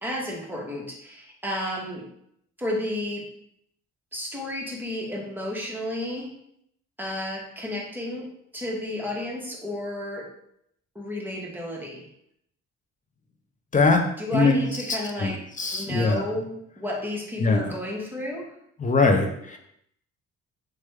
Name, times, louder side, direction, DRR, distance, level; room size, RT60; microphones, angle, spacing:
voice 1, 0.0-2.0 2.6-3.2 4.1-6.3 7.0-8.3 8.5-10.3 10.9-12.0 14.2-15.4 15.7-18.5, left 1 dB, 5° right, -3 dB, 0.8 m, -32 dB
voice 2, 13.7-14.0 14.3-14.6 14.9-16.2 17.4-17.7 18.8-19.6, left 3 dB, 25° left, 4 dB, 0.4 m, -22 dB
3.2 x 2.1 x 3.1 m, 0.74 s
cardioid pair, 90°, 30 cm